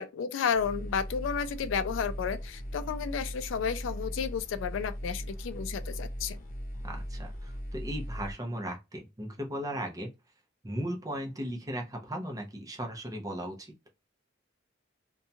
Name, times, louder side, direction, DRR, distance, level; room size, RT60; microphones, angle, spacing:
voice 1, 0.0-6.4, left 6 dB, 75° left, 0.3 m, -32 dB
sound 1, 0.5-8.3, equal, 40° left, 0.7 m, -38 dB
voice 2, 6.8-10.1 10.6-13.7, equal, 20° right, 0.7 m, -37 dB
2.6 x 2.2 x 2.7 m
head